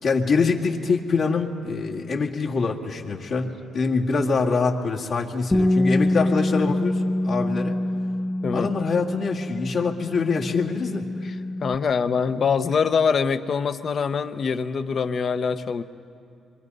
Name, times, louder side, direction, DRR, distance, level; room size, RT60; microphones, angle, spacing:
voice 1, 0.0-7.8 8.5-11.1, left 4 dB, 65° left, -4 dB, 2.0 m, -24 dB
Bass guitar, 5.5-11.8, left 1 dB, 15° left, 0.7 m, -25 dB
voice 2, 11.6-15.8, left 6 dB, 50° left, 10 dB, 0.9 m, -24 dB
25.5 x 23.5 x 5.4 m, 2.5 s
cardioid pair, 90°, 0 cm